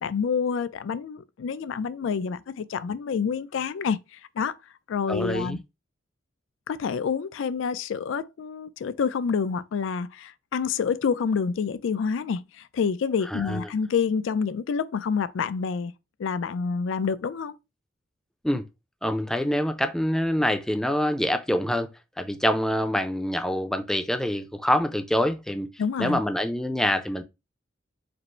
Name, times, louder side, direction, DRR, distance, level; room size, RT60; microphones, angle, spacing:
voice 1, 0.0-4.0 4.4-4.5 4.9-5.6 6.7-15.9 16.2-17.5 25.8-26.2, left 6 dB, 90° left, 0.4 m, -27 dB
voice 2, 5.1-5.6 13.3-13.7 18.4-18.6 19.0-21.9 22.2-25.7 26.0-27.2, equal, 5° left, 0.4 m, -25 dB
5.1 x 2.0 x 4.3 m
head